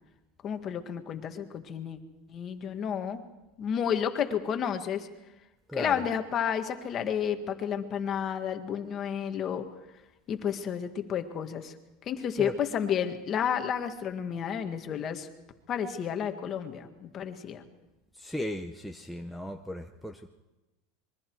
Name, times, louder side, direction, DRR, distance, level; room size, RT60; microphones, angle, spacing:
voice 1, 0.4-2.0 2.3-3.2 3.6-5.1 5.7-9.7 10.3-11.7 12.1-15.3 15.7-17.6, left 8 dB, 30° left, 6 dB, 1.7 m, -31 dB
voice 2, 5.7-6.0 12.4-12.5 18.2-20.3, left 1 dB, ahead, 8 dB, 0.7 m, -36 dB
26.0 x 22.5 x 4.7 m, 1.0 s
supercardioid pair, 155°, 0 cm